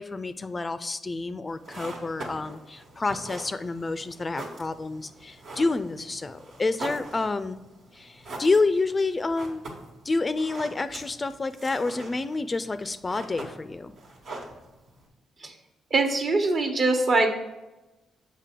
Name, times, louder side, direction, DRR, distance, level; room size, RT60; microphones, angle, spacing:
voice 1, 0.0-7.6 7.9-9.6 10.0-13.9, left 3 dB, 30° left, 13 dB, 0.3 m, -28 dB
sound 1, 1.5-15.1, right 2 dB, 75° right, 1.5 m, -43 dB
voice 2, 15.9-17.3, right 3 dB, 50° right, 5 dB, 1.1 m, -22 dB
6.6 x 5.2 x 3.7 m, 1.0 s
supercardioid pair, 65°, 0 cm